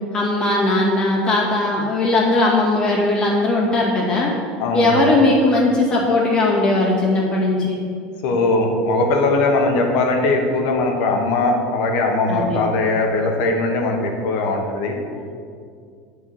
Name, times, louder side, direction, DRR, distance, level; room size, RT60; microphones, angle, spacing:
voice 1, 0.1-4.3 4.7-7.8 12.3-12.6 15.1-15.2, left 2 dB, 20° left, -4 dB, 2.1 m, -18 dB
voice 2, 4.6-5.0 8.2-15.0, left 2 dB, 60° left, 2 dB, 1.4 m, -20 dB
8.9 x 4.7 x 7.6 m, 2.2 s
cardioid pair, 160°, 4 cm